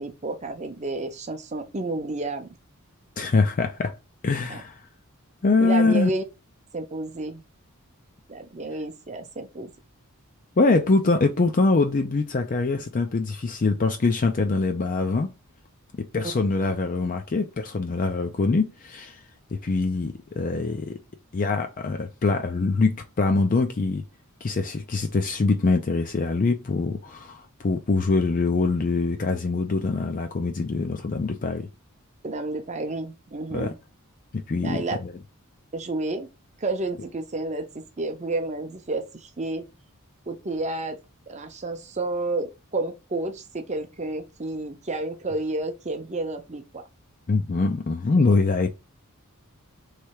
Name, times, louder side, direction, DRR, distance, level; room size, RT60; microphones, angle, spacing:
voice 1, 0.0-2.5 4.5-4.6 5.6-6.2 6.7-7.4 8.3-9.7 32.2-33.7 34.6-35.0 35.7-36.3 36.6-37.7 38.0-39.7 40.3-41.0 41.3-46.8, right 2 dB, 30° right, 0.7 m, -30 dB
voice 2, 3.2-3.9 4.2-4.8 5.4-6.1 10.6-15.3 16.0-19.2 19.5-21.0 21.3-24.0 24.4-31.7 33.5-33.7 34.3-35.1 47.3-48.7, left 3 dB, 35° left, 0.4 m, -24 dB
3.3 x 3.2 x 4.7 m
head